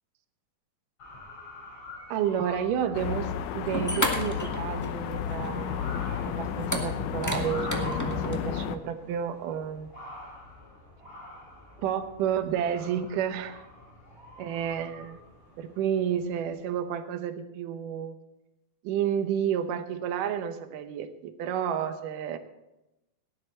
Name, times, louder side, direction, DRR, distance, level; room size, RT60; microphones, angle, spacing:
Motor vehicle (road) / Siren, 1.0-16.6, left 1 dB, 45° left, 6.5 m, -46 dB
voice 1, 2.1-5.8 6.3-9.9 11.8-13.6 14.4-15.2 15.6-18.2 18.8-22.4, right 9 dB, 85° right, 9 dB, 2.5 m, -31 dB
sound 1, 2.9-8.8, left 8 dB, 75° left, 2.1 m, -32 dB
sound 2, 3.7-5.1 5.4-5.5 6.6-8.4, left 1 dB, 25° left, 0.4 m, -31 dB
17.0 x 11.0 x 4.4 m, 0.95 s
omnidirectional pair, 3.7 m